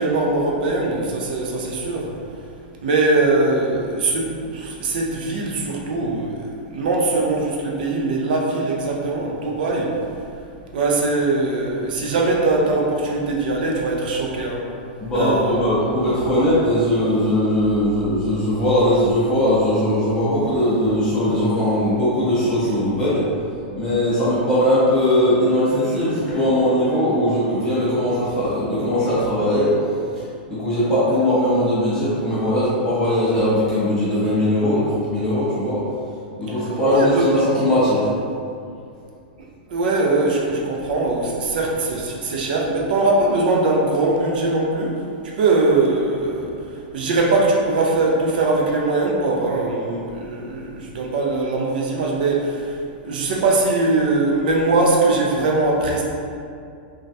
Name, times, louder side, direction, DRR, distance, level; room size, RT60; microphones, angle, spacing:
voice 1, 0.0-2.1 2.8-10.0 10.7-14.6 15.1-15.6 36.9-37.3 39.7-45.0 45.4-52.8 53.0-56.0, right 2 dB, 60° right, -1 dB, 0.5 m, -21 dB
voice 2, 15.0-23.3 23.7-29.8 30.5-35.8 36.4-38.1, left 1 dB, 10° left, -11 dB, 0.4 m, -19 dB
3.1 x 2.3 x 2.6 m, 2.4 s
supercardioid pair, 175°, 5 cm